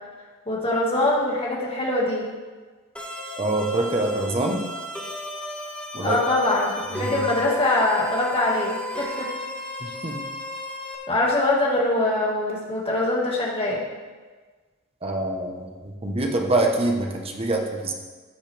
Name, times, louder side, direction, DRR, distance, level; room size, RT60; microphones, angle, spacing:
voice 1, 0.5-2.2 6.0-9.3 11.1-13.8, left 2 dB, 30° left, -4 dB, 2.0 m, -23 dB
sound 1, 3.0-11.0, equal, 5° left, 1.4 m, -34 dB
voice 2, 3.4-4.6 5.9-6.2 6.9-7.2 9.8-10.2 15.0-17.9, right 2 dB, 30° right, 2 dB, 1.2 m, -25 dB
15.5 x 6.4 x 3.5 m, 1.4 s
head